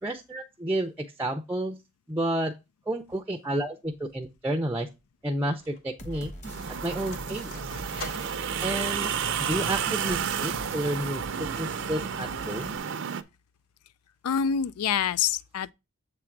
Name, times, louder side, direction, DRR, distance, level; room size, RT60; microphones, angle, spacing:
voice 1, 0.0-1.8 2.1-2.5 2.9-4.9 5.2-6.3 6.8-7.5 8.6-9.1 9.4-12.8, right 1 dB, 10° right, 0.5 m, -31 dB
sound 1, 3.9-4.4 5.2-10.7, left 2 dB, 70° left, 2.3 m, -46 dB
sound 2, 6.0-12.8, equal, 30° left, 1.2 m, -43 dB
sound 3, 6.4-13.2, right 7 dB, 55° right, 0.5 m, -31 dB
voice 2, 14.2-15.7, left 7 dB, 85° left, 0.4 m, -26 dB
7.7 x 3.7 x 4.5 m
head